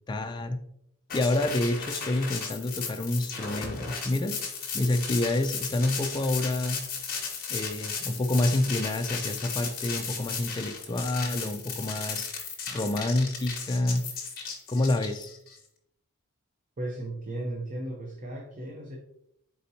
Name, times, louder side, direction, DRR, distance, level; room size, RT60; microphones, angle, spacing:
voice 1, 0.1-0.6 1.1-4.4 4.7-6.8 7.5-12.3 12.7-14.0 14.7-15.3, left 2 dB, 20° left, 5 dB, 0.3 m, -28 dB
sound 1, 1.1-15.6, left 6 dB, 40° left, 1.0 m, -35 dB
voice 2, 16.8-19.0, right 1 dB, 35° right, -1 dB, 0.6 m, -35 dB
4.2 x 4.1 x 2.7 m, 0.76 s
head